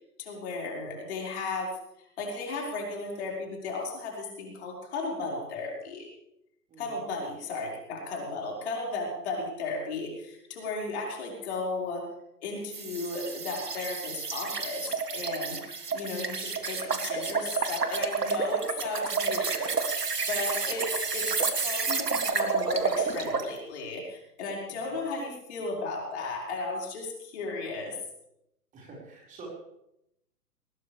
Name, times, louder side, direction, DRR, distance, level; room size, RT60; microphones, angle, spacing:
voice 1, 0.2-1.7 2.0-6.1 6.8-12.0 12.4-20.9 21.1-28.0, left 3 dB, 45° left, -2 dB, 5.3 m, -35 dB
voice 2, 6.7-7.0 24.7-25.0 28.7-29.5, right 3 dB, 15° right, -4 dB, 5.2 m, -48 dB
sound 1, 12.7-23.5, right 5 dB, 80° right, 1.9 m, -30 dB
20.0 x 20.0 x 3.5 m, 0.81 s
figure-of-eight pair, 125°, 47 cm